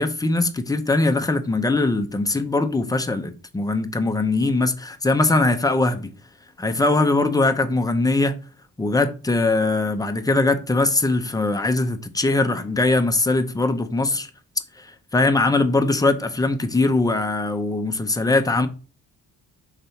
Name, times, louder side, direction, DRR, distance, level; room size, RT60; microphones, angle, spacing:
voice 1, 0.0-6.1 6.6-8.3 8.8-14.3 14.8-18.7, left 2 dB, 10° left, 0.7 m, -21 dB
5.3 x 4.1 x 4.4 m
cardioid pair, 115°, 33 cm